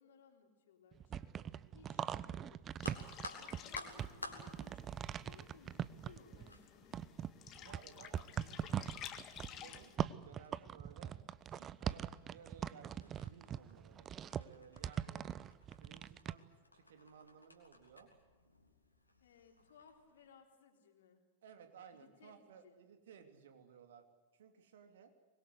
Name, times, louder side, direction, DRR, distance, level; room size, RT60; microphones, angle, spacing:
voice 1, 0.0-1.5 1.7-6.9 11.0-11.2 19.2-21.2 21.9-22.8, left 6 dB, 60° left, 3 dB, 4.0 m, -63 dB
sound 1, 0.9-6.6 6.9-16.3, right 9 dB, 25° right, 0.7 m, -41 dB
sound 2, 2.8-20.3, left 2 dB, 85° left, 3.4 m, -56 dB
sound 3, 2.8-10.0, left 10 dB, 35° left, 1.9 m, -53 dB
voice 2, 3.9-4.6 7.6-8.9 9.3-9.9 10.2-11.1 11.5-14.1 14.3-15.2 15.7-16.4 16.7-18.1 21.4-24.0 24.3-25.1, right 7 dB, 60° right, 6 dB, 3.0 m, -59 dB
24.5 x 21.5 x 8.2 m, 1.3 s
figure-of-eight pair, 90°, 0 cm